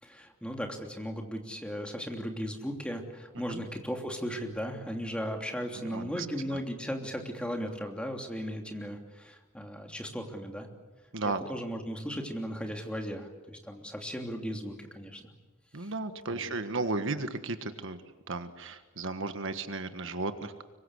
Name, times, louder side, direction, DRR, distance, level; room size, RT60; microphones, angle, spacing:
voice 1, 0.0-10.7 11.2-15.2 15.8-15.9 16.3-16.6, equal, 5° left, 2 dB, 3.0 m, -37 dB
voice 2, 5.8-6.6 11.1-11.4 15.7-18.0 18.3-20.6, right 3 dB, 65° right, 9 dB, 1.5 m, -34 dB
26.0 x 23.5 x 8.3 m, 1.2 s
head